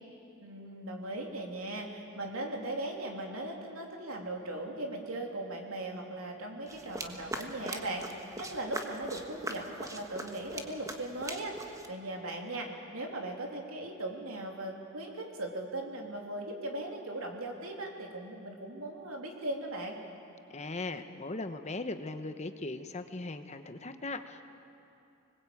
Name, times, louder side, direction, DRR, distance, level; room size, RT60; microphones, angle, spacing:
voice 1, 0.4-12.7 12.9-20.0, right 1 dB, 90° right, 1 dB, 3.3 m, -38 dB
sound 1, 6.7-11.9, right 2 dB, 15° right, 1.4 m, -41 dB
voice 2, 20.5-24.4, left 2 dB, 35° left, 8 dB, 1.0 m, -38 dB
25.0 x 20.0 x 8.6 m, 2.7 s
head